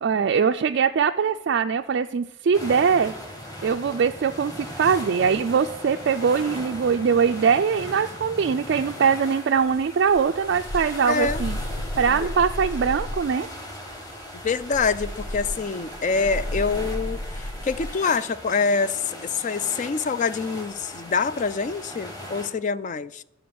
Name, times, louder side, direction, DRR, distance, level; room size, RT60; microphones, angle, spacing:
voice 1, 0.0-3.1 3.6-11.6 12.0-13.5, right 6 dB, 55° right, 0.3 m, -22 dB
sound 1, 2.5-22.5, equal, 20° left, 1.7 m, -39 dB
sound 2, 10.1-13.4 14.6-18.0, left 1 dB, 55° left, 0.7 m, -33 dB
voice 2, 11.1-11.4 14.4-23.2, left 4 dB, 35° left, 0.3 m, -25 dB
11.0 x 5.1 x 7.7 m
head